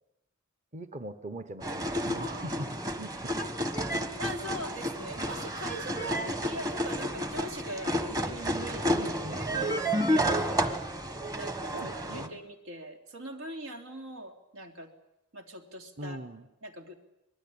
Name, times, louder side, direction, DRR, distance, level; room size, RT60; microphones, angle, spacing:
voice 1, 0.7-3.3 8.9-9.7 11.7-12.4 16.0-16.5, right 1 dB, 35° right, 9 dB, 1.1 m, -41 dB
sound 1, 1.6-12.3, equal, 20° right, 1.4 m, -31 dB
voice 2, 4.2-10.7 11.3-14.9 15.3-16.3 16.6-16.9, right 1 dB, 90° right, 4 dB, 3.2 m, -41 dB
24.5 x 20.0 x 8.7 m, 0.90 s
head